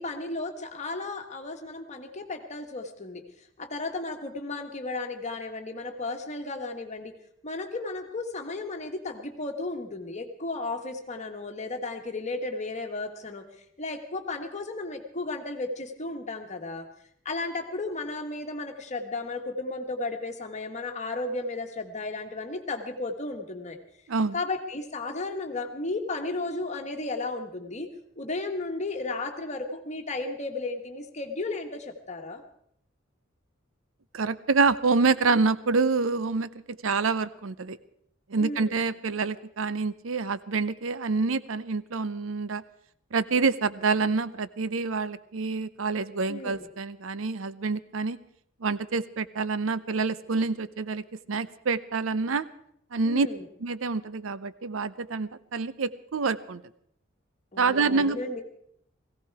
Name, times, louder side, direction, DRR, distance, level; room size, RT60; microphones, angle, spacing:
voice 1, 0.0-3.2 3.6-7.1 7.4-13.4 13.8-16.9 17.2-23.8 24.3-27.9 28.2-32.4 38.4-38.8 46.3-46.7 53.0-53.4 57.5-58.4, left 2 dB, 35° left, 4 dB, 1.6 m, -34 dB
voice 2, 24.1-24.4 34.1-37.8 38.3-42.6 43.1-48.2 48.6-52.5 52.9-53.3 53.6-56.6 57.6-58.2, right 4 dB, 80° right, 16 dB, 0.7 m, -27 dB
17.5 x 16.0 x 4.8 m, 0.71 s
head